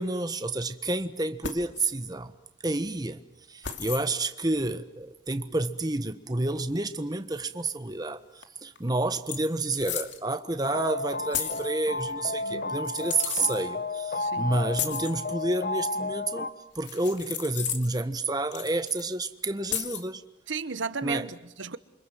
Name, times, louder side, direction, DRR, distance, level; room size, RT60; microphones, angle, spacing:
voice 1, 0.0-2.3 2.6-3.2 3.5-16.5 16.7-20.2 21.0-21.3, right 2 dB, 20° right, 1.3 m, -30 dB
sound 1, 1.4-1.9 3.6-4.1 6.1-6.2 8.4-8.5 8.8-8.9 9.3-10.2 11.3-11.7 12.8-13.6 14.7-15.1 16.8-18.0 18.5-19.1 19.7-20.1, left 9 dB, 65° left, 2.7 m, -34 dB
sound 2, 10.6-16.5, left 3 dB, 45° left, 1.2 m, -32 dB
voice 2, 12.4-12.8 14.2-14.5 20.5-21.8, right 5 dB, 75° right, 1.0 m, -35 dB
28.5 x 25.5 x 7.7 m
head